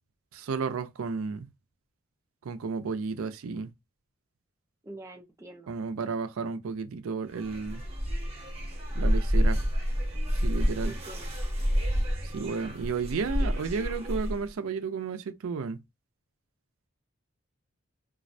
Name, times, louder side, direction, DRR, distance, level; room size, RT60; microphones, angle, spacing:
voice 1, 0.3-1.5 2.4-3.7 5.7-7.8 8.9-9.6 10.3-10.9 12.2-15.8, right 5 dB, 80° right, 0.4 m, -32 dB
voice 2, 4.8-5.7 10.8-11.4, right 1 dB, 15° right, 0.3 m, -46 dB
sound 1, 7.3-14.5, equal, 30° right, 0.8 m, -29 dB
2.3 x 2.1 x 2.5 m
head